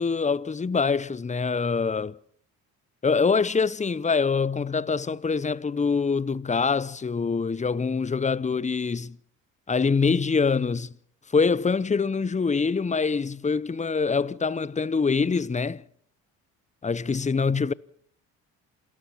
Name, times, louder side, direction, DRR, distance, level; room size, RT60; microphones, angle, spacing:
voice 1, 0.0-2.2 3.0-9.2 9.7-10.9 11.3-15.8 16.8-17.7, left 5 dB, 20° left, 0.8 m, -24 dB
27.5 x 14.0 x 7.4 m
supercardioid pair, 60°, 38 cm